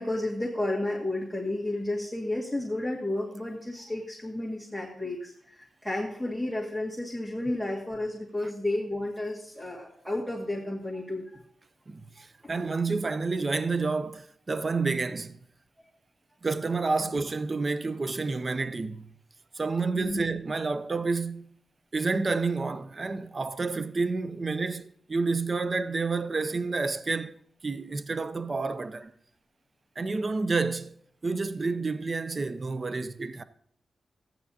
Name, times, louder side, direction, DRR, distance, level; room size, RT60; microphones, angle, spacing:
voice 1, 0.0-11.4 19.9-20.2, left 1 dB, 5° right, 2.0 m, -32 dB
voice 2, 11.9-15.4 16.4-19.1 19.5-21.5 21.9-27.3 27.6-29.1 30.0-33.4, right 3 dB, 40° right, 0.5 m, -29 dB
14.5 x 9.1 x 2.8 m
cardioid pair, 80°, 0 cm